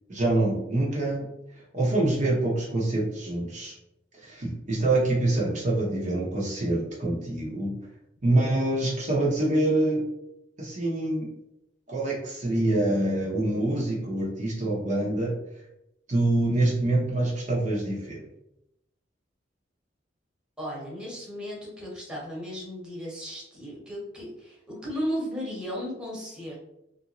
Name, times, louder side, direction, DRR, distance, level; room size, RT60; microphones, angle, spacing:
voice 1, 0.1-1.3 1.7-3.8 4.2-7.8 8.2-10.1 10.6-11.3 11.9-15.3 16.1-18.2, right 2 dB, 45° right, -4 dB, 0.8 m, -25 dB
voice 2, 20.6-26.6, equal, 5° right, -5 dB, 1.1 m, -35 dB
3.4 x 2.6 x 2.9 m, 0.84 s
head